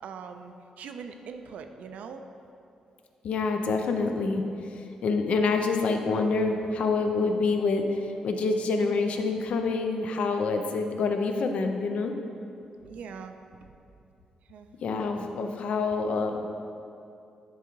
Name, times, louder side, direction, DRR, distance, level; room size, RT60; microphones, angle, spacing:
voice 1, 0.0-2.2 12.6-13.3 13.6-13.7 14.5-14.7, right 6 dB, 90° right, 6 dB, 0.5 m, -42 dB
voice 2, 3.2-12.1 14.8-16.5, left 4 dB, 60° left, 5 dB, 0.6 m, -27 dB
10.0 x 3.7 x 4.6 m, 2.7 s
wide cardioid pair, 165°, 2 cm